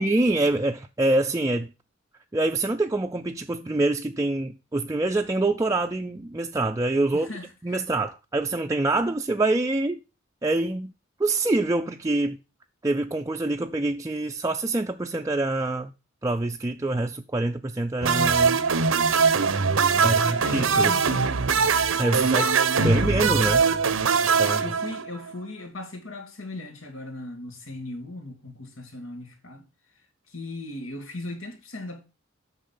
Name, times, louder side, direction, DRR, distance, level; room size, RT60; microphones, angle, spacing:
voice 1, 0.0-1.7 2.3-7.3 7.6-10.0 10.4-10.9 11.2-12.4 12.8-15.9 16.2-18.6 20.0-20.9 22.0-22.5 22.8-23.7 24.4-24.6, right 2 dB, 15° right, 0.5 m, -25 dB
voice 2, 7.1-7.5 20.0-21.5 22.2-23.1 24.4-29.7 30.3-32.0, left 2 dB, 80° left, 2.4 m, -38 dB
sound 1, 18.0-25.3, right 5 dB, 85° right, 0.9 m, -22 dB
8.5 x 6.3 x 5.6 m
head